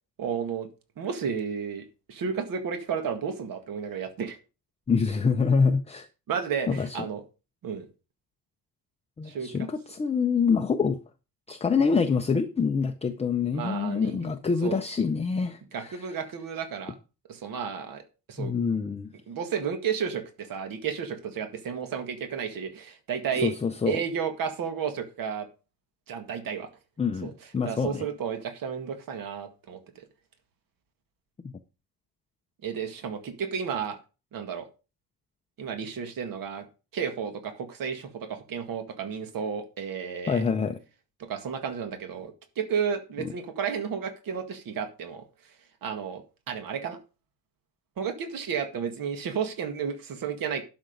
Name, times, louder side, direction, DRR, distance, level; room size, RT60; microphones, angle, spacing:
voice 1, 0.2-0.7 1.0-4.4 6.3-7.2 7.6-7.9 9.3-9.7 13.5-14.3 14.6-14.8 15.7-17.0 17.3-18.0 18.3-18.5 19.3-23.5 23.9-25.5 26.1-26.7 27.2-27.3 27.6-30.0 32.6-34.0 34.3-34.7 35.6-36.7 36.9-40.4 41.2-45.3 45.8-47.0 48.0-50.6, right 7 dB, 55° right, 1.9 m, -32 dB
voice 2, 4.9-6.1 6.7-7.1 9.2-11.0 11.5-16.0 18.4-19.1 23.4-24.0 27.0-28.1 31.4-31.5 40.3-40.8 43.2-43.3, left 5 dB, 15° left, 0.6 m, -26 dB
12.0 x 6.1 x 5.2 m
cardioid pair, 160°, 40 cm